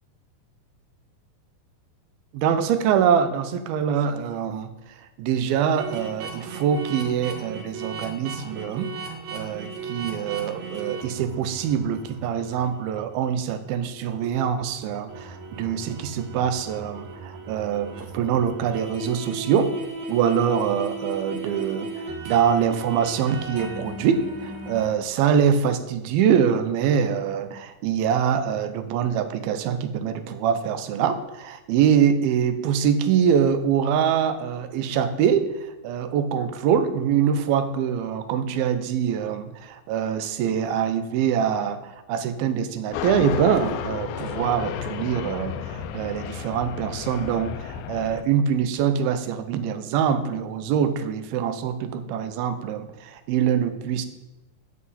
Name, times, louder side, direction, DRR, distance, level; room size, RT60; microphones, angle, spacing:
voice 1, 2.3-4.7 5.2-19.7 20.1-21.9 22.3-54.1, right 8 dB, 85° right, 10 dB, 2.6 m, -24 dB
sound 1, 5.8-13.7 14.1-14.2 14.8-25.0, right 3 dB, 55° right, 2.5 m, -37 dB
sound 2, 42.9-48.2, left 8 dB, 80° left, 2.4 m, -32 dB
10.5 x 7.3 x 4.2 m, 1.0 s
omnidirectional pair, 4.2 m